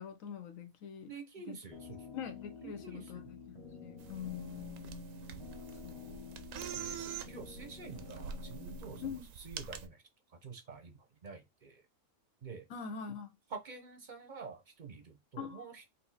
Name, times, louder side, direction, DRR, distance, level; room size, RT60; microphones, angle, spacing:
voice 1, 0.0-1.1 1.5-1.6 2.1-3.4 3.8-5.0 5.8-6.5 9.0-9.3 12.7-13.3 15.4-15.7, left 7 dB, 75° left, 1.2 m, -44 dB
voice 2, 1.1-2.0 2.6-3.2 6.7-10.0 10.4-11.8 12.4-12.7 13.5-15.9, right 5 dB, 45° right, 0.7 m, -48 dB
sound 1, 1.7-9.1, left 3 dB, 30° left, 0.7 m, -49 dB
sound 2, 4.0-9.9, right 7 dB, 70° right, 0.9 m, -46 dB
4.1 x 2.7 x 3.9 m
omnidirectional pair, 1.4 m